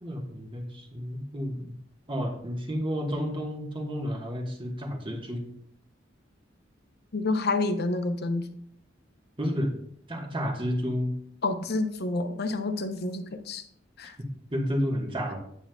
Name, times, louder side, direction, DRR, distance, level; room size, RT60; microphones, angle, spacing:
voice 1, 0.0-1.7 2.1-5.5 9.4-9.7 10.1-11.1 14.2-15.4, equal, 25° right, 2 dB, 1.3 m, -31 dB
voice 2, 7.1-8.5 11.4-13.6 14.0-14.1, left 2 dB, 55° left, 8 dB, 0.7 m, -28 dB
9.1 x 8.2 x 2.3 m, 0.66 s
head